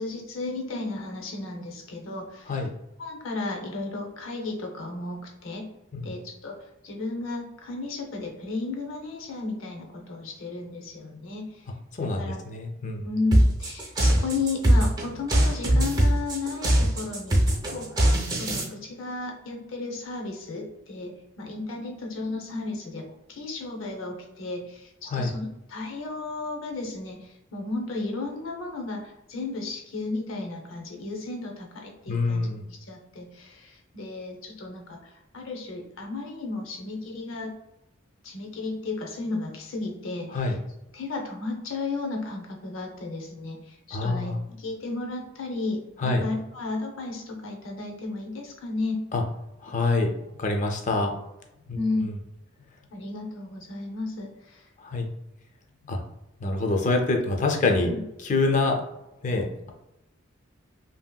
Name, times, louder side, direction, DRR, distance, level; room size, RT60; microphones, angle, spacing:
voice 1, 0.0-2.6 3.0-5.7 6.0-11.7 12.0-12.4 13.0-37.5 38.2-40.5 40.9-49.1 51.7-52.1 52.9-54.7 57.8-58.0, left 3 dB, 75° left, 2 dB, 0.6 m, -34 dB
voice 2, 11.9-13.1 25.1-25.3 32.1-32.6 40.3-40.6 43.9-44.4 46.0-46.2 49.1-49.2 49.6-50.1 50.4-51.1 51.7-52.2 54.8-55.1 55.9-56.0 56.4-57.9 58.2-58.8 59.2-59.7, left 3 dB, 40° left, 3 dB, 0.4 m, -26 dB
sound 1, 13.3-18.6, right 1 dB, 20° right, 0.5 m, -21 dB
2.9 x 2.7 x 2.2 m, 0.91 s
head